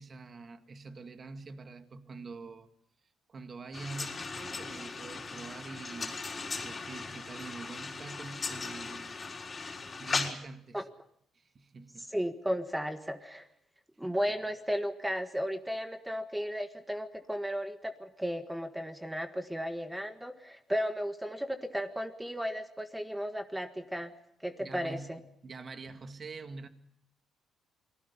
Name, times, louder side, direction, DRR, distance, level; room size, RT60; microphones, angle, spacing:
voice 1, 0.0-2.7 3.3-6.2 6.6-9.1 10.0-10.9 11.3-12.1 24.6-26.7, right 3 dB, 40° right, 2.1 m, -45 dB
sound 1, 3.7-10.3, left 4 dB, 35° left, 4.3 m, -38 dB
voice 2, 12.1-13.5 14.0-24.1 24.4-25.2, equal, 5° right, 1.6 m, -34 dB
28.5 x 20.5 x 5.5 m
cardioid pair, 90°, 0 cm